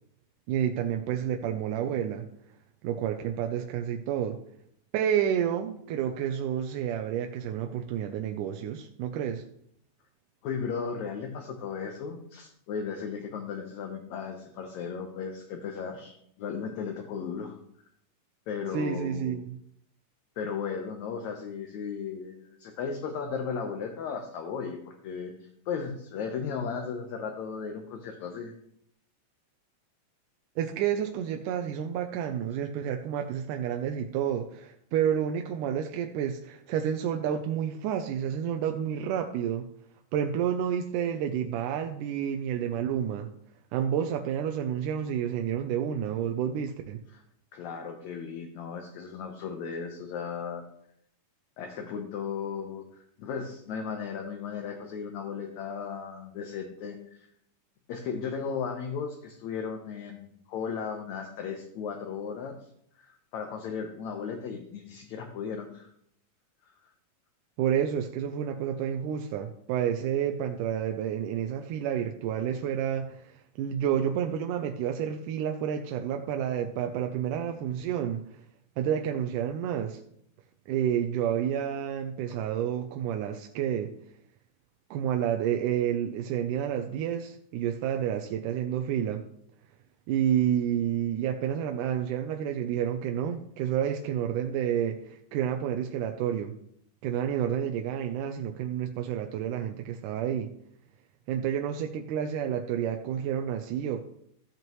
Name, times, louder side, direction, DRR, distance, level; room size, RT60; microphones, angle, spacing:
voice 1, 0.5-2.3 2.8-4.4 4.9-9.4 18.7-19.6 30.6-39.7 40.1-43.3 43.7-47.0 67.6-78.4 78.8-80.0 80.7-83.9 84.9-89.2 90.1-96.5 97.0-100.5 101.3-104.0, right 9 dB, 80° right, 5 dB, 2.1 m, -30 dB
voice 2, 10.4-17.6 18.5-19.4 20.4-28.5 47.1-47.2 47.5-50.6 51.6-52.8 53.2-57.3 57.9-62.6 63.0-65.9 66.6-66.7, left 6 dB, 65° left, 3 dB, 2.0 m, -36 dB
14.5 x 7.9 x 3.1 m, 0.71 s
omnidirectional pair, 3.9 m